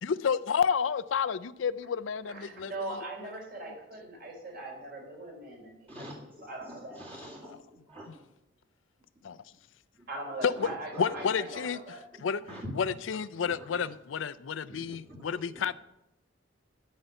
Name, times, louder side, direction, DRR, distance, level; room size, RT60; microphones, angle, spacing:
voice 1, 0.0-2.7 7.4-7.6 9.2-9.4 10.4-10.7 11.0-11.8 12.2-12.4 12.7-15.7, left 6 dB, 80° left, 0.4 m, -30 dB
voice 2, 2.2-6.0 6.4-7.0 10.1-12.0, right 2 dB, 55° right, 4.2 m, -40 dB
voice 3, 5.9-8.1 10.6-10.7 10.9-11.2 12.5-12.7 13.4-13.9 14.9-15.6, equal, 30° right, 2.1 m, -45 dB
13.5 x 5.5 x 8.0 m
head